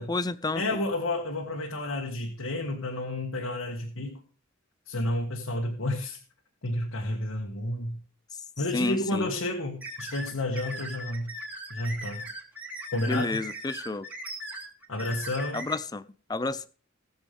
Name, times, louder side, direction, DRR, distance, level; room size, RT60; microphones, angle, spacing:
voice 1, 0.0-0.8 8.7-9.3 13.0-14.1 15.5-16.0 16.3-16.7, left 2 dB, 20° left, 15 dB, 0.5 m, -30 dB
voice 2, 0.5-4.2 4.8-6.2 6.6-8.0 8.6-11.3 11.7-12.3 12.9-13.4 14.9-15.6, left 1 dB, 85° left, 0 dB, 1.6 m, -31 dB
sound 1, 9.8-15.7, right 1 dB, 10° right, 2.4 m, -39 dB
19.0 x 7.3 x 3.4 m, 0.40 s
head